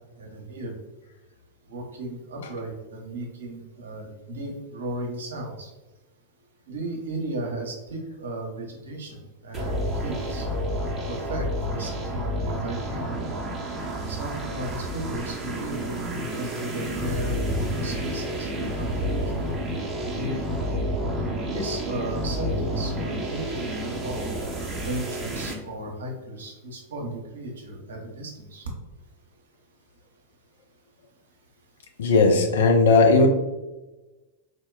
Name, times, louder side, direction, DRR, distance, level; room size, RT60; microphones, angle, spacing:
voice 1, 0.2-0.7 1.7-5.7 6.7-9.2 9.4-9.7 10.0-10.5 11.1-13.1 14.1-19.4 20.0-20.5 21.5-24.3 24.8-28.6, right 1 dB, 65° right, 1 dB, 0.7 m, -35 dB
sound 1, 9.5-25.5, equal, 20° right, 0.6 m, -30 dB
voice 2, 32.0-33.3, left 3 dB, 60° left, 4 dB, 0.4 m, -17 dB
4.0 x 2.1 x 2.2 m, 1.1 s
figure-of-eight pair, 90°, 0 cm